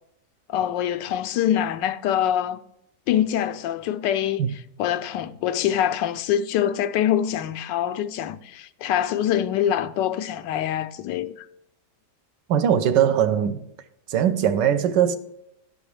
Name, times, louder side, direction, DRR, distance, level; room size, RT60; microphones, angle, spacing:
voice 1, 0.5-2.6 3.1-4.4 4.8-11.3, left 10 dB, 90° left, 1.3 m, -24 dB
voice 2, 12.5-13.6 14.1-15.2, right 9 dB, 85° right, 1.3 m, -20 dB
13.0 x 5.0 x 3.2 m
omnidirectional pair, 1.9 m